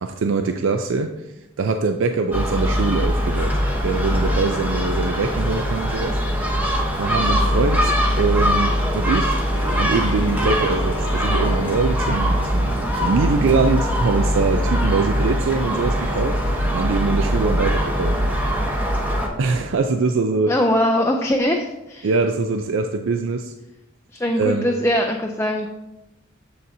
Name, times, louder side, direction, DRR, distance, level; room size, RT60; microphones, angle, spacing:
voice 1, 0.0-1.1 1.6-6.2 6.9-9.4 9.7-18.2 19.4-20.5 22.0-23.5 24.4-24.7, right 4 dB, 70° right, 6 dB, 0.4 m, -23 dB
Gull seagull, 2.3-19.3, equal, 10° right, 0.9 m, -21 dB
Harp, 9.5-14.7, right 1 dB, 65° left, 0.9 m, -37 dB
voice 2, 20.5-22.1 24.1-25.7, equal, 15° left, 2 dB, 0.4 m, -21 dB
7.5 x 6.7 x 2.7 m, 0.95 s
head